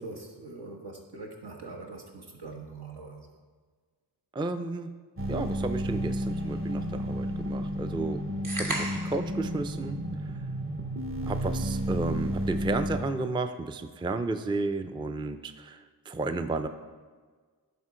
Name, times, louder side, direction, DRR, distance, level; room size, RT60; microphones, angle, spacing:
voice 1, 0.0-3.4, right 3 dB, 75° right, 0 dB, 1.3 m, -43 dB
voice 2, 4.3-4.9 5.3-8.2 8.5-10.4 11.3-16.7, right 3 dB, 15° right, 9 dB, 0.4 m, -33 dB
sound 1, 5.2-13.0, equal, 30° right, 0.8 m, -32 dB
sound 2, 8.4-9.3, right 1 dB, 50° right, 1.5 m, -33 dB
11.0 x 3.7 x 4.9 m, 1.5 s
wide cardioid pair, 50°, 40 cm